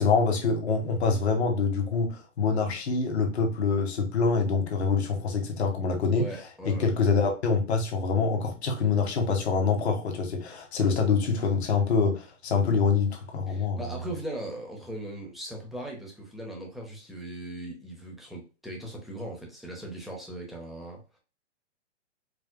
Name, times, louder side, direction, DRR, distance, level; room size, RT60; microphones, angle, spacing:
voice 1, 0.0-6.3 6.6-14.0, left 5 dB, 60° left, 1.6 m, -25 dB
voice 2, 6.2-6.9 10.8-10.9 13.5-21.0, right 1 dB, ahead, 1.1 m, -39 dB
4.7 x 3.5 x 2.2 m
hypercardioid pair, 135°, 37 cm